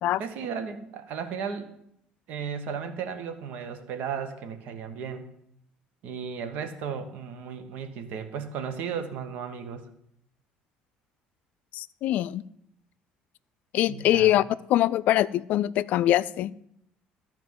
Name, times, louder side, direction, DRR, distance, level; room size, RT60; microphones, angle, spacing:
voice 1, 0.2-1.7 2.3-5.3 6.0-9.8 13.9-14.4, right 6 dB, 70° right, 9 dB, 1.3 m, -35 dB
voice 2, 11.7-12.4 13.7-14.4 14.7-16.7, left 13 dB, 65° left, 16 dB, 0.4 m, -23 dB
12.5 x 4.5 x 7.8 m, 0.75 s
cardioid pair, 115°, 3 cm